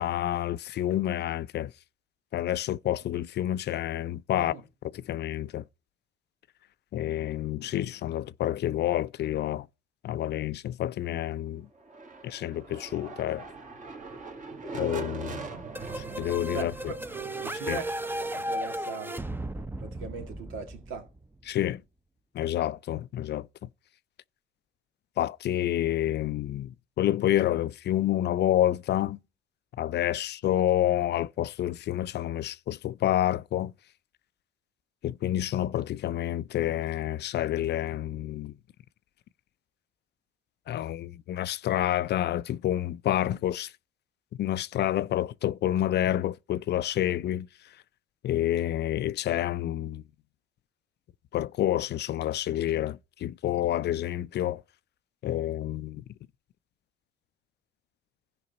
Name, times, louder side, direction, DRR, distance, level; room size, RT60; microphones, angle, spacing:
voice 1, 0.0-1.7 2.3-5.6 6.9-9.7 10.0-11.7 12.2-13.4 14.7-15.5 16.0-16.9 17.7-17.8 21.4-21.8 22.3-23.7 25.2-29.2 29.8-33.7 35.0-38.5 40.7-43.7 44.4-47.5 48.2-50.0 51.3-54.6 55.2-56.0, left 12 dB, 60° left, 0.4 m, -28 dB
sound 1, 11.8-19.5, right 3 dB, 40° right, 1.9 m, -42 dB
sound 2, 15.7-21.4, right 1 dB, 10° right, 0.6 m, -35 dB
voice 2, 17.4-19.1 19.8-21.1, right 4 dB, 85° right, 1.9 m, -39 dB
14.5 x 5.3 x 4.0 m
cardioid pair, 90°, 20 cm